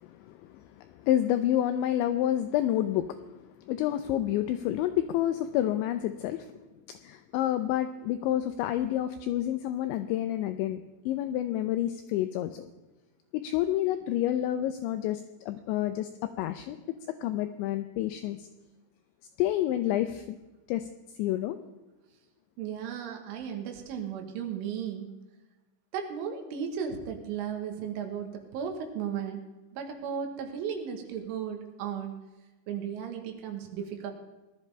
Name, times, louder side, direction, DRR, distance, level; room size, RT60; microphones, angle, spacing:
voice 1, 0.0-3.2 3.7-6.5 6.9-10.8 11.1-12.7 13.3-16.8 17.2-18.5 19.4-20.4 20.7-20.9 21.2-21.6, left 12 dB, 90° left, 9 dB, 2.6 m, -29 dB
voice 2, 22.6-25.1 25.9-29.4 29.7-32.1 32.7-34.1, right 7 dB, 75° right, 4 dB, 3.7 m, -35 dB
19.0 x 12.0 x 3.3 m, 1.1 s
omnidirectional pair, 5.8 m